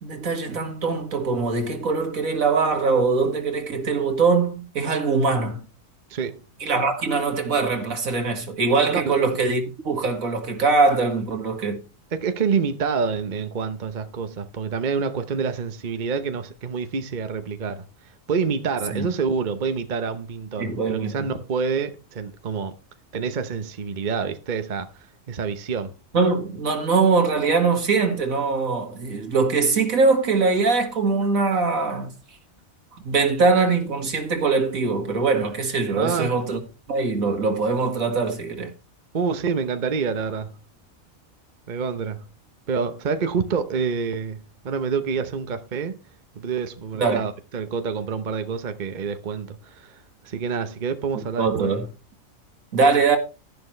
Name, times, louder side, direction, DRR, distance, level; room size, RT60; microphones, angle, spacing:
voice 1, 0.0-5.6 6.6-11.8 18.9-19.1 20.6-21.3 26.1-32.1 33.0-36.6 36.9-38.7 47.0-47.3 51.1-51.9 52.7-53.2, right 4 dB, 80° right, 2.3 m, -22 dB
voice 2, 8.9-9.2 12.1-17.8 18.3-22.8 23.1-24.9 25.3-25.9 36.0-36.5 39.1-40.5 41.7-42.2 42.7-46.0 46.3-51.7, right 5 dB, 40° right, 0.9 m, -27 dB
11.5 x 11.0 x 3.2 m
omnidirectional pair, 1.4 m